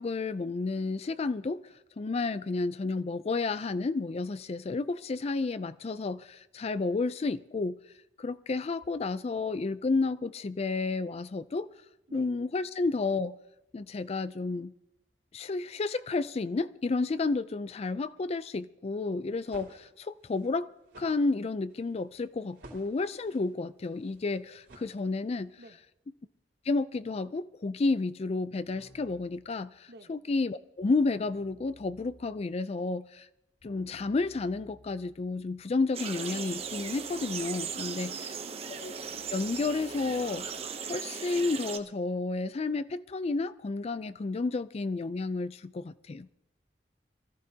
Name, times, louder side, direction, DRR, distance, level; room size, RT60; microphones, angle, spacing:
voice 1, 0.0-7.8 8.2-11.7 12.1-13.4 13.7-14.7 15.3-20.7 21.0-25.5 26.7-33.3 33.6-38.1 38.8-38.9 39.3-40.5 40.9-46.3, left 3 dB, 35° left, 0.4 m, -31 dB
sound 1, 19.2-25.5, right 1 dB, 85° right, 3.4 m, -55 dB
Keyboard (musical), 28.7-29.3 30.8-32.4 33.6-40.6, left 2 dB, 90° left, 2.9 m, -60 dB
sound 2, 35.9-41.8, right 6 dB, 35° right, 0.7 m, -38 dB
voice 2, 37.7-38.6, right 2 dB, 65° right, 1.0 m, -51 dB
24.0 x 14.5 x 2.8 m
head